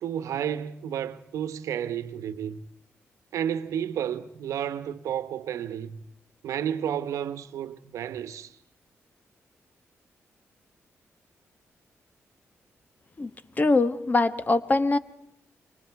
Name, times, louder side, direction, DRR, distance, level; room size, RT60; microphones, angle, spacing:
voice 1, 0.0-2.6 3.3-6.0 6.4-8.6, right 9 dB, 90° right, 1.0 m, -31 dB
voice 2, 13.6-15.0, left 3 dB, 35° left, 1.3 m, -22 dB
30.0 x 24.5 x 4.7 m
cardioid pair, 75°, 5 cm